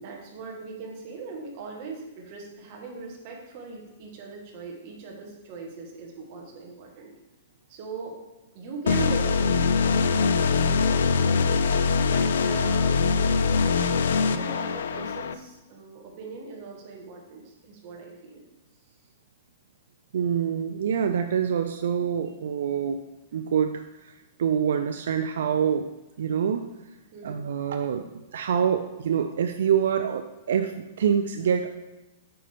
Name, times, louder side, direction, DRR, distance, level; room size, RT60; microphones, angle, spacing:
voice 1, 0.0-7.1 7.7-8.2 8.5-11.5 12.0-18.4 27.1-27.6, right 4 dB, 30° right, 0 dB, 1.3 m, -40 dB
sound 1, 8.9-15.3, left 5 dB, 75° left, 0.4 m, -23 dB
voice 2, 20.1-23.0 23.3-26.7 27.2-31.7, right 8 dB, 70° right, 6 dB, 0.4 m, -26 dB
8.6 x 5.2 x 3.4 m, 1.0 s
hypercardioid pair, 175°, 0 cm